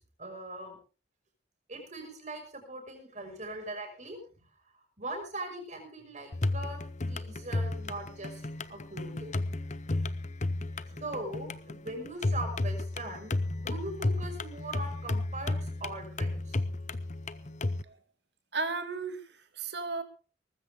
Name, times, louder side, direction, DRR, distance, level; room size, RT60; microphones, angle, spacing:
voice 1, 0.2-0.8 1.7-4.4 5.0-6.8 7.1-9.5 10.7-16.6, right 2 dB, 40° right, 5 dB, 5.7 m, -41 dB
sound 1, 6.3-17.8, left 2 dB, 40° left, 0.8 m, -33 dB
voice 2, 18.5-20.0, right 4 dB, 60° right, 8 dB, 2.2 m, -35 dB
19.5 x 15.0 x 3.6 m, 0.37 s
head